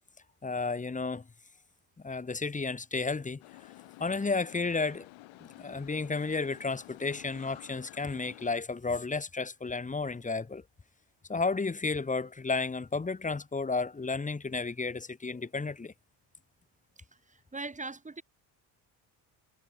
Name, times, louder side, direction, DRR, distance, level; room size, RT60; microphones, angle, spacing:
voice 1, 0.4-1.2 2.0-3.4 4.0-5.1 5.4-10.6 11.3-15.9, left 4 dB, 15° left, 1.4 m, -32 dB
sound 1, 3.4-8.6, left 19 dB, 85° left, 3.3 m, -51 dB
voice 2, 17.3-18.2, right 3 dB, 15° right, 2.1 m, -40 dB
cardioid pair, 110°, 46 cm